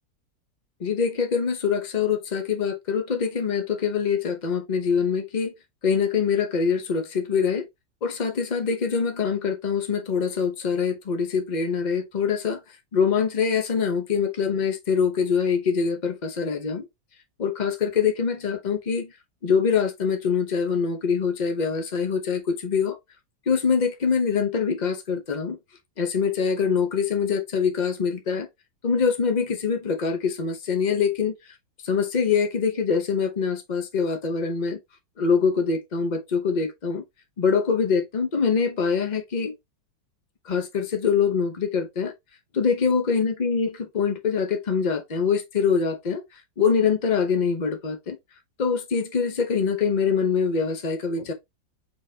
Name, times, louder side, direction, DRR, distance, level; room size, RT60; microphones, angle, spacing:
voice 1, 0.8-5.5 5.8-7.7 8.0-12.6 12.9-16.9 17.4-19.1 19.4-23.0 23.5-25.6 26.0-28.5 28.8-31.3 31.8-34.8 35.2-37.0 37.4-39.5 40.4-42.1 42.5-48.2 48.6-51.3, left 6 dB, 45° left, 0.5 m, -24 dB
4.5 x 4.0 x 2.8 m
omnidirectional pair, 2.0 m